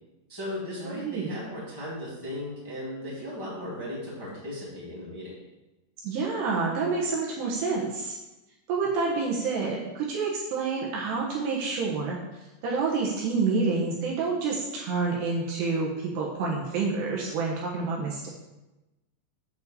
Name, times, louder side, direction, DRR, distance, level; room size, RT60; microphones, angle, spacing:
voice 1, 0.3-5.3, left 1 dB, 5° left, -8 dB, 2.0 m, -36 dB
voice 2, 0.8-1.3 6.0-8.2 8.7-18.3, right 4 dB, 70° right, -3 dB, 3.0 m, -28 dB
8.2 x 5.2 x 6.8 m, 1.0 s
omnidirectional pair, 5.5 m